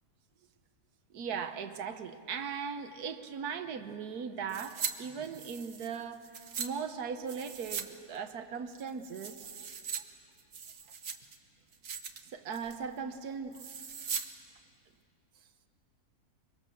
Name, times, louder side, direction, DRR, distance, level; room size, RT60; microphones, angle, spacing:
voice 1, 1.1-9.5 12.2-13.6, right 6 dB, 80° right, 9 dB, 1.6 m, -39 dB
sound 1, 4.5-4.9 5.2-6.7 7.3-7.9 8.1-8.2 8.7-10.0 10.4-11.4 11.7-12.2 12.5-12.8 13.5-14.3 14.6-14.7, right 7 dB, 60° right, 1.4 m, -39 dB
24.0 x 23.5 x 7.1 m, 2.3 s
omnidirectional pair, 1.6 m